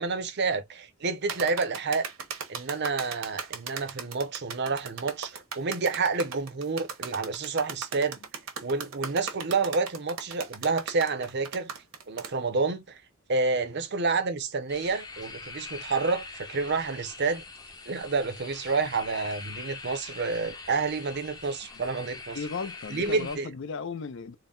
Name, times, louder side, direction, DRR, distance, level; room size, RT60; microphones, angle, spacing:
voice 1, 0.0-2.0 2.5-8.2 8.6-11.7 12.1-13.0 13.3-17.4 17.9-22.4 22.9-23.5, right 4 dB, 55° right, 0.7 m, -29 dB
sound 1, 1.3-12.3, right 6 dB, 75° right, 1.0 m, -37 dB
sound 2, 14.7-23.4, left 3 dB, 20° left, 0.6 m, -43 dB
voice 2, 22.3-24.4, left 5 dB, 60° left, 0.5 m, -35 dB
3.9 x 2.1 x 3.7 m
head